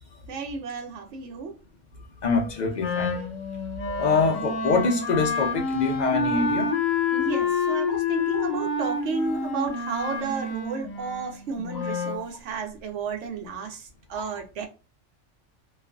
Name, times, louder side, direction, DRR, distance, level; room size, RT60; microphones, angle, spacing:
voice 1, 0.3-1.6 7.1-14.7, right 4 dB, 75° right, 0.9 m, -32 dB
voice 2, 2.2-3.3 3.9-6.7 7.9-8.0 8.3-8.4 14.2-14.3, left 4 dB, 60° left, 0.5 m, -25 dB
Wind instrument woodwind instrument, 2.8-12.2, left 4 dB, 80° left, 1.0 m, -28 dB
2.5 x 2.3 x 2.2 m
omnidirectional pair, 1.3 m